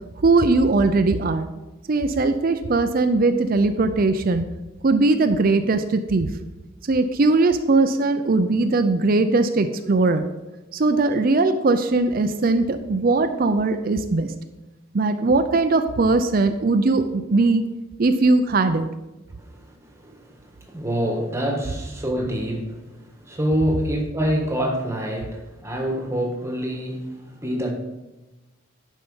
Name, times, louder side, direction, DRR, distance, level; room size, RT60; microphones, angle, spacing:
voice 1, 0.2-1.5 1.9-4.4 4.8-6.3 6.9-10.3 10.7-14.3 14.9-17.6 18.0-18.9, right 3 dB, 45° right, 9 dB, 0.5 m, -20 dB
voice 2, 19.4-27.7, equal, 15° right, 2 dB, 1.4 m, -26 dB
10.5 x 5.5 x 5.5 m, 1.1 s
head